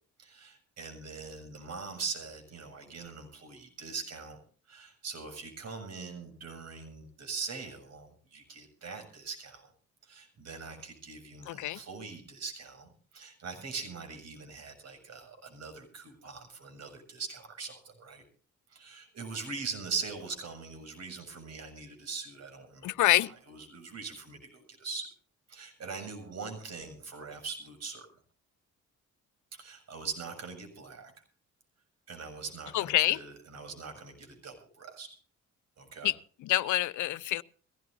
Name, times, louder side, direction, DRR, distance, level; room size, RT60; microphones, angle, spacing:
voice 1, 0.2-4.4 4.7-9.7 10.0-18.2 18.7-25.1 25.5-28.1 29.5-31.1 32.1-35.1 35.8-36.1, right 5 dB, 60° right, 5 dB, 7.1 m, -42 dB
voice 2, 11.5-11.8 22.8-23.3 32.7-33.2 36.0-36.1 36.4-37.4, left 15 dB, 75° left, 16 dB, 0.7 m, -26 dB
22.5 x 17.5 x 2.7 m, 0.42 s
cardioid pair, 90°, 30 cm